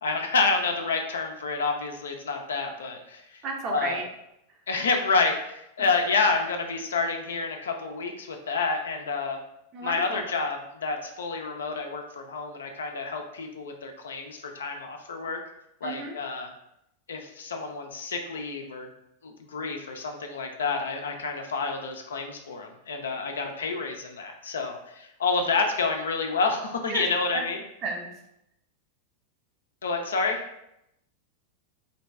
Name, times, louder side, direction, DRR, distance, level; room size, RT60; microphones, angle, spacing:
voice 1, 0.0-3.4 3.7-4.0 4.7-9.4 9.8-15.4 15.8-16.5 17.1-18.9 19.2-27.6 29.8-30.4, left 4 dB, 65° left, 3 dB, 0.4 m, -29 dB
voice 2, 3.4-4.1 5.8-5.9 9.7-10.2 15.8-16.1 26.9-27.0 27.8-28.1, right 3 dB, 35° right, 1 dB, 0.6 m, -33 dB
3.0 x 2.6 x 3.3 m, 0.83 s
figure-of-eight pair, 90°, 0 cm